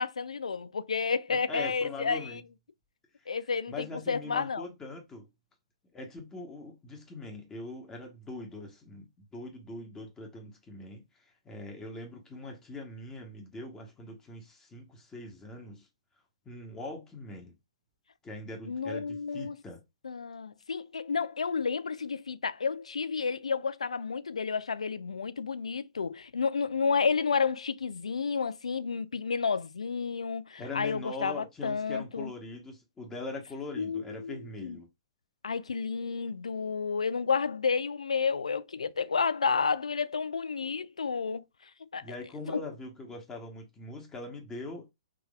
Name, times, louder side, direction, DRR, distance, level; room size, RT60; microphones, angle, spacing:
voice 1, 0.0-2.4 3.3-4.6 18.7-19.6 20.0-32.3 33.8-34.4 34.6-34.8 35.4-41.4 41.8-42.0 42.5-42.6, left 5 dB, 85° left, 0.4 m, -31 dB
voice 2, 1.3-2.4 3.2-3.4 3.7-5.3 5.9-15.9 16.4-17.5 18.2-19.8 30.6-34.9 42.0-44.9, left 2 dB, 15° left, 1.1 m, -42 dB
3.6 x 2.9 x 2.3 m
hypercardioid pair, 120°, 3 cm